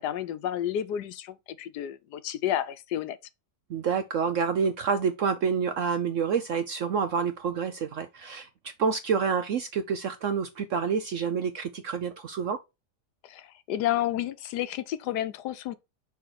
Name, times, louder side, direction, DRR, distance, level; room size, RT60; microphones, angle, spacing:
voice 1, 0.0-3.2 13.2-15.8, left 11 dB, 75° left, 1.2 m, -31 dB
voice 2, 3.7-12.6, right 6 dB, 65° right, 0.8 m, -28 dB
5.7 x 4.2 x 4.6 m
omnidirectional pair, 1.8 m